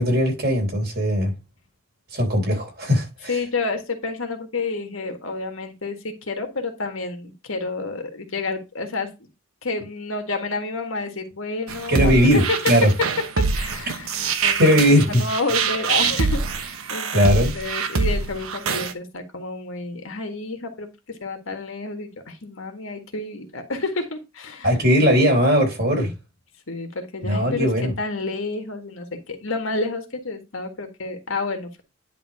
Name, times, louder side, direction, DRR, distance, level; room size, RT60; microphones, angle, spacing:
voice 1, 0.0-1.3 2.1-3.3 11.9-12.9 14.6-15.2 17.1-17.5 24.6-26.1 27.2-27.9, equal, 50° right, 3.9 m, -19 dB
voice 2, 3.3-9.3 9.6-12.6 13.4-24.7 25.9-26.1 26.7-27.7 28.0-31.8, left 3 dB, 70° left, 1.7 m, -30 dB
sound 1, 11.7-18.9, right 5 dB, 80° right, 1.0 m, -24 dB
10.5 x 3.6 x 4.8 m
head